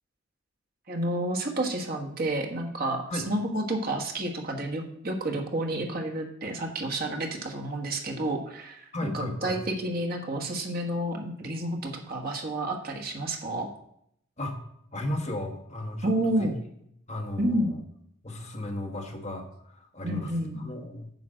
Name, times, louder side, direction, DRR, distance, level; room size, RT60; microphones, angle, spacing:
voice 1, 0.9-13.7 16.0-16.5 17.4-17.7 20.0-20.6, right 1 dB, 50° right, 1 dB, 1.3 m, -30 dB
voice 2, 8.9-9.6 14.4-14.6 14.9-16.5 17.1-17.8 18.2-21.1, left 1 dB, 35° left, 2 dB, 1.2 m, -35 dB
9.4 x 5.1 x 6.3 m, 0.73 s
head